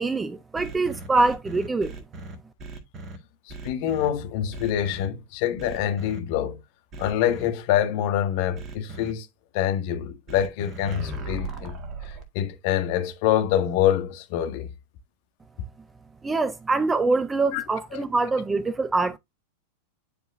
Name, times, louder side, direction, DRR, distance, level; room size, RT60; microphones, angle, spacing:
voice 1, 0.0-1.9 16.2-19.2, right 3 dB, 15° right, 0.5 m, -24 dB
sound 1, 0.6-3.2 3.5-4.1 4.5-5.1 5.6-6.2 6.9-7.5 8.6-9.1 10.3-12.2, right 2 dB, 30° right, 1.8 m, -37 dB
voice 2, 3.6-6.6 7.0-9.3 9.5-11.7 12.0-14.7 17.5-17.6 17.9-18.0, left 11 dB, 45° left, 1.6 m, -25 dB
9.9 x 4.8 x 2.6 m
figure-of-eight pair, 90°, 0 cm